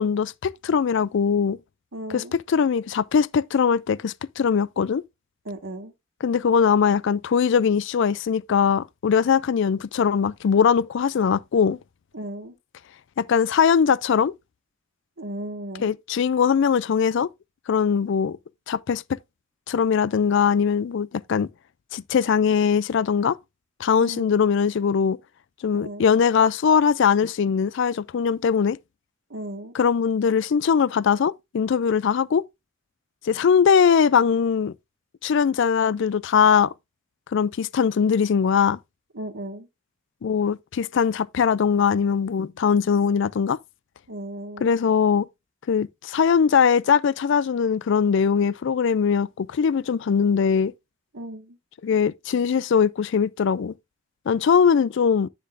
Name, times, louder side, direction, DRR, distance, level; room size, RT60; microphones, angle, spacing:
voice 1, 0.0-1.6 2.1-5.0 6.2-11.8 13.2-14.3 15.8-17.3 17.7-18.4 18.7-19.2 19.7-21.5 21.9-23.4 23.8-25.2 25.6-28.8 29.7-32.4 33.2-34.7 35.2-36.7 37.3-38.8 40.2-43.6 44.6-45.3 45.7-50.7 51.8-53.7 54.3-55.3, left 6 dB, 60° left, 0.4 m, -21 dB
voice 2, 1.9-2.4 5.4-5.9 12.1-12.6 15.2-15.9 24.0-24.4 25.8-26.1 29.3-29.7 39.1-39.7 44.1-44.8 51.1-51.6, right 1 dB, 70° right, 1.7 m, -36 dB
9.7 x 6.7 x 2.5 m
head